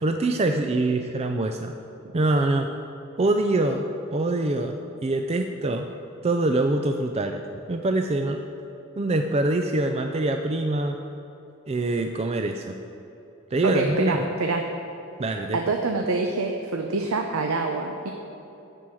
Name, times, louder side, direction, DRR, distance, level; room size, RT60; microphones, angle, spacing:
voice 1, 0.0-1.7 2.1-2.7 3.2-5.9 6.2-7.4 7.7-8.4 9.0-11.0 11.7-12.8 13.5-14.2 15.2-15.8, right 2 dB, 30° right, 5 dB, 0.4 m, -24 dB
voice 2, 13.6-14.7 15.5-18.1, right 3 dB, 80° right, 3 dB, 0.7 m, -26 dB
13.5 x 4.7 x 8.4 m, 2.9 s
head